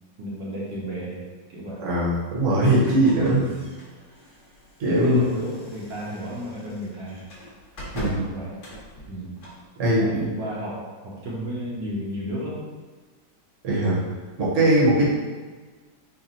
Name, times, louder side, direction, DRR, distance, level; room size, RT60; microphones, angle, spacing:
voice 1, 0.2-1.8 3.3-3.7 4.9-7.2 8.2-8.5 9.1-9.3 9.9-12.7, equal, 70° right, -6 dB, 1.4 m, -33 dB
voice 2, 1.8-3.4 4.8-5.2 7.9-8.3 9.8-10.3 13.6-14.0 14.4-15.1, right 1 dB, 45° right, -6 dB, 1.1 m, -20 dB
sound 1, 2.8-9.7, left 1 dB, 50° left, 1.0 m, -41 dB
3.8 x 2.1 x 4.2 m, 1.3 s
omnidirectional pair, 2.1 m